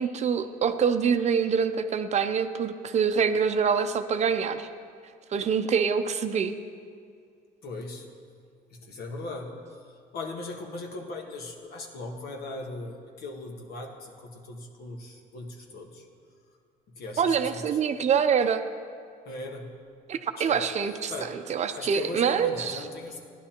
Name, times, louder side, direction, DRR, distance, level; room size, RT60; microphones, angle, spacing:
voice 1, 0.0-4.7 5.3-6.6 17.2-18.6 20.1-22.8, right 6 dB, 40° right, 9 dB, 0.6 m, -25 dB
voice 2, 7.6-8.1 8.7-16.1 17.0-17.8 19.2-19.8 20.4-20.7 21.1-21.3 21.7-23.2, left 2 dB, 65° left, 2 dB, 1.5 m, -39 dB
14.5 x 10.5 x 2.9 m, 2.2 s
cardioid pair, 110°, 17 cm